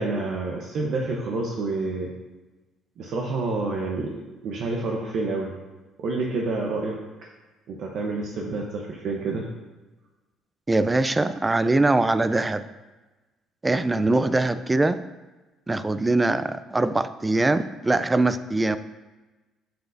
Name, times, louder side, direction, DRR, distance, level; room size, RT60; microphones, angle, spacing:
voice 1, 0.0-2.1 3.0-4.1 4.4-5.5 6.0-7.0 7.7-9.5, right 3 dB, 65° right, 0 dB, 0.8 m, -28 dB
voice 2, 10.7-12.6 13.6-15.0 15.7-18.8, right 2 dB, 20° right, 13 dB, 0.4 m, -22 dB
7.6 x 6.9 x 2.6 m, 1.2 s
supercardioid pair, 75°, 0 cm